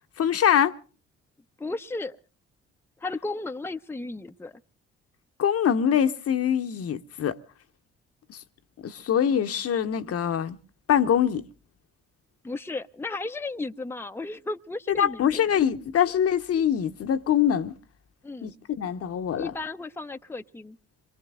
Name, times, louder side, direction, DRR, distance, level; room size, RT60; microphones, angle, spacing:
voice 1, 0.2-0.7 5.4-7.4 8.3-8.4 8.8-10.6 10.9-11.4 14.9-17.8 18.4-19.5, left 9 dB, 55° left, 1.0 m, -24 dB
voice 2, 1.6-2.2 3.0-4.6 12.4-15.6 18.2-18.5 19.4-20.8, left 3 dB, 10° left, 0.8 m, -34 dB
26.5 x 22.5 x 2.4 m
hypercardioid pair, 50°, 29 cm